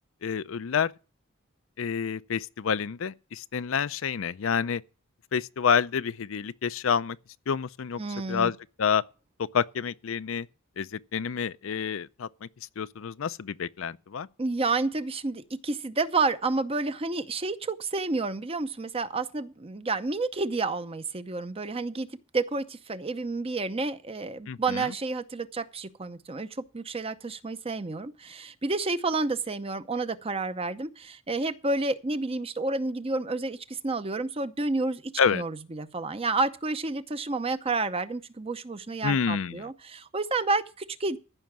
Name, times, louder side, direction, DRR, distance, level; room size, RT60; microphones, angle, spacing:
voice 1, 0.2-0.9 1.8-4.8 5.3-7.2 7.5-8.0 8.3-9.0 9.4-10.5 10.8-12.5 12.8-14.3 24.5-24.9 35.2-35.4 39.0-39.6, left 6 dB, 65° left, 0.5 m, -28 dB
voice 2, 8.0-8.5 14.4-22.1 22.3-41.2, right 3 dB, 25° right, 0.7 m, -30 dB
14.5 x 5.8 x 7.3 m
head